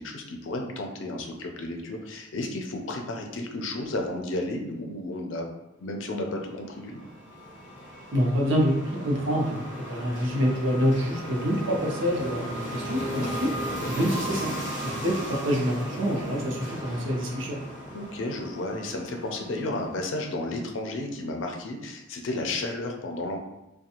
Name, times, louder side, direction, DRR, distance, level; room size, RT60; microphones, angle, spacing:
voice 1, 0.0-5.5 5.8-7.0 13.7-13.9 17.9-23.4, left 2 dB, 90° left, 2 dB, 0.5 m, -33 dB
sound 1, 6.3-20.7, equal, 10° right, 1.3 m, -36 dB
voice 2, 8.1-13.5 13.9-14.5 14.8-17.6, equal, 90° right, -1 dB, 0.7 m, -26 dB
2.5 x 2.2 x 2.8 m, 0.98 s
head